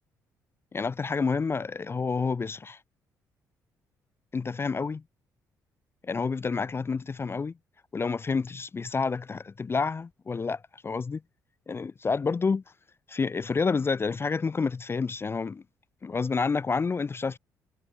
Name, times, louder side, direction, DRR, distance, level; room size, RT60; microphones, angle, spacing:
voice 1, 0.7-2.8 4.3-5.0 6.0-7.5 7.9-11.2 11.7-12.6 13.1-15.6 16.0-17.4, left 4 dB, 25° left, 0.4 m, -29 dB
hypercardioid pair, 45°, 9 cm